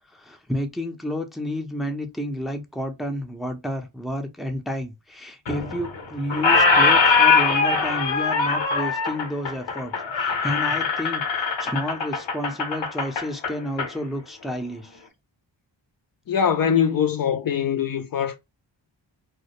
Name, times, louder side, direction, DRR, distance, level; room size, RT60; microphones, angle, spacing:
voice 1, 0.1-15.0, left 1 dB, ahead, 0.5 m, -30 dB
Squeak, 5.5-6.0 6.3-13.9, left 4 dB, 75° left, 0.8 m, -21 dB
voice 2, 16.3-18.4, left 8 dB, 50° left, 0.5 m, -22 dB
2.3 x 2.1 x 2.8 m
cardioid pair, 45°, 46 cm